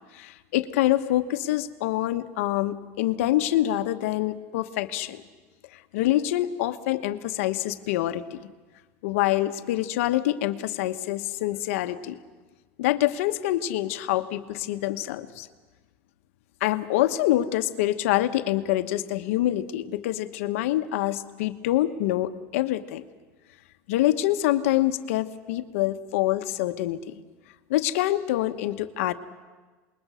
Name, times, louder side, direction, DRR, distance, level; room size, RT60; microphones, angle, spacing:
voice 1, 0.1-5.2 5.7-8.5 9.0-12.2 12.8-15.5 16.6-23.0 23.9-27.1 27.7-29.1, left 14 dB, 85° left, 10 dB, 1.1 m, -26 dB
27.0 x 21.0 x 6.4 m, 1.3 s
supercardioid pair, 150°, 7 cm